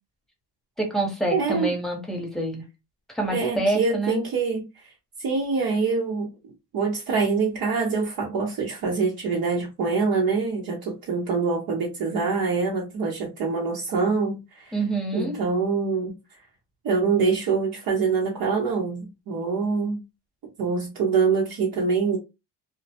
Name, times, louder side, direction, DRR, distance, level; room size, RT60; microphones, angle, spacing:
voice 1, 0.8-2.6 3.1-4.2 14.7-15.4, right 2 dB, ahead, 0.9 m, -26 dB
voice 2, 1.3-1.7 3.3-4.7 5.2-14.7 15.1-16.1 16.8-20.0 20.6-22.2, right 4 dB, 55° right, 0.8 m, -25 dB
2.2 x 2.1 x 2.7 m
supercardioid pair, 85°, 42 cm